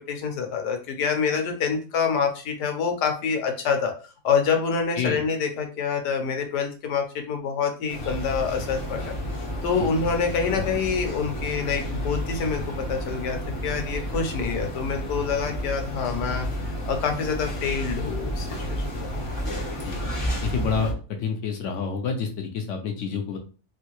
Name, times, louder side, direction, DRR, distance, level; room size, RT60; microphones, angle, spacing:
voice 1, 0.1-3.9 4.2-9.1 9.6-16.5 16.9-19.1 19.5-19.7, left 6 dB, 85° left, 4 dB, 1.3 m, -26 dB
sound 1, 7.9-20.9, equal, 45° left, 0.4 m, -31 dB
voice 2, 20.3-23.4, left 5 dB, 65° left, 4 dB, 0.8 m, -29 dB
3.1 x 2.7 x 2.9 m, 0.36 s
omnidirectional pair, 1.7 m